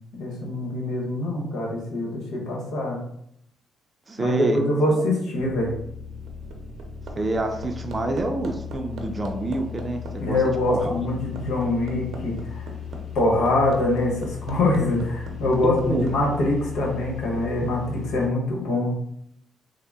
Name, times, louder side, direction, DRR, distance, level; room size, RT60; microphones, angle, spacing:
voice 1, 0.2-3.0 4.2-5.7 10.2-12.7 13.1-18.9, left 2 dB, 80° left, -1 dB, 1.1 m, -24 dB
voice 2, 4.1-4.6 4.9-5.0 7.2-10.4 10.7-11.1 15.6-16.1, right 2 dB, 25° right, 4 dB, 0.5 m, -27 dB
sound 1, 5.3-18.3, left 8 dB, 55° left, 0.6 m, -37 dB
Hammer, 6.0-16.2 17.5-17.6, right 3 dB, 70° right, 0.6 m, -40 dB
3.7 x 2.1 x 3.5 m, 0.73 s
cardioid pair, 90°, 0 cm